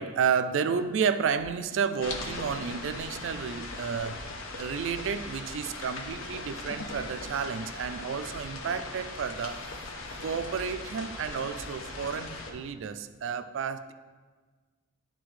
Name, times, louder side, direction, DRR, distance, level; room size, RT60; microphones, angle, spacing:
voice 1, 0.0-4.2 4.6-9.6 10.2-13.9, right 6 dB, 60° right, 11 dB, 0.3 m, -31 dB
sound 1, 1.4-12.3, equal, 15° left, 0.7 m, -52 dB
sound 2, 2.0-12.5, left 3 dB, 70° left, 0.7 m, -39 dB
11.0 x 4.0 x 3.2 m, 1.4 s
head